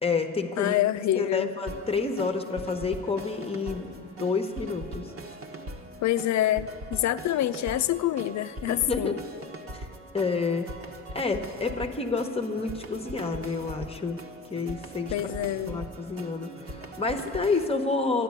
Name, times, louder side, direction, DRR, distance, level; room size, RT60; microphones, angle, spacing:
voice 1, 0.0-0.8 1.1-5.1 8.7-9.2 9.7-9.9 10.1-10.7 11.1-14.2 14.5-15.3 15.7-18.2, left 4 dB, 20° left, 5 dB, 1.1 m, -29 dB
voice 2, 0.6-1.5 6.0-9.2 15.1-15.8, left 13 dB, 65° left, 12 dB, 0.6 m, -26 dB
sound 1, 1.7-17.7, right 1 dB, 45° right, 1.5 m, -41 dB
12.5 x 11.0 x 9.7 m, 2.5 s
cardioid pair, 90°, 30 cm